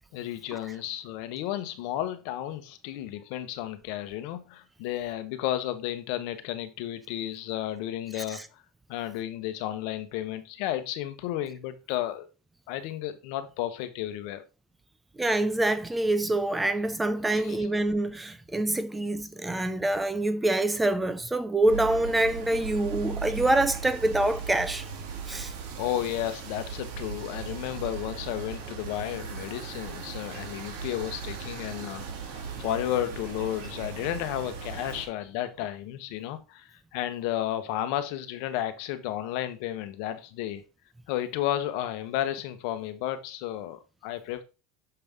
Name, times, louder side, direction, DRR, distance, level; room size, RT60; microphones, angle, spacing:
voice 1, 0.1-8.4 8.9-12.3 12.7-14.4 17.3-17.7 25.8-32.1 32.3-40.6 41.1-44.4, left 12 dB, 65° left, 1.0 m, -33 dB
voice 2, 15.2-24.9 25.3-25.5, right 1 dB, 10° right, 0.5 m, -26 dB
sound 1, 21.7-35.1, right 6 dB, 70° right, 2.1 m, -38 dB
6.8 x 5.4 x 3.5 m
supercardioid pair, 150°, 0 cm